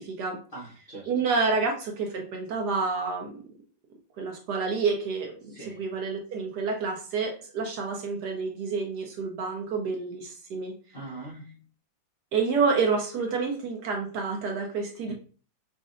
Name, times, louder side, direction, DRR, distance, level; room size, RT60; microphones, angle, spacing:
voice 1, 0.0-0.4 1.1-3.3 4.2-5.3 5.6-10.7 12.3-15.1, right 4 dB, 65° right, 2 dB, 1.2 m, -28 dB
voice 2, 0.5-1.2 5.5-5.8 10.9-11.6 15.1-15.2, right 3 dB, 40° left, -7 dB, 0.8 m, -42 dB
4.9 x 2.6 x 2.4 m, 0.38 s
omnidirectional pair, 2.0 m